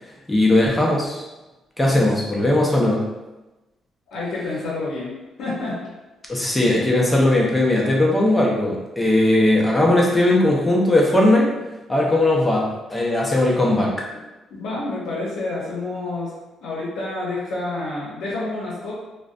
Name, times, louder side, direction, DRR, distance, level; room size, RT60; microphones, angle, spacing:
voice 1, 0.3-1.3 1.8-3.0 6.3-11.5 11.9-13.9, left 1 dB, 15° left, -3 dB, 0.6 m, -18 dB
voice 2, 4.1-5.1 5.4-5.8 14.1-14.2 14.5-16.3 16.6-18.9, left 2 dB, 85° left, -7 dB, 0.6 m, -28 dB
2.4 x 2.1 x 2.4 m, 1.1 s
cardioid pair, 90°, 0 cm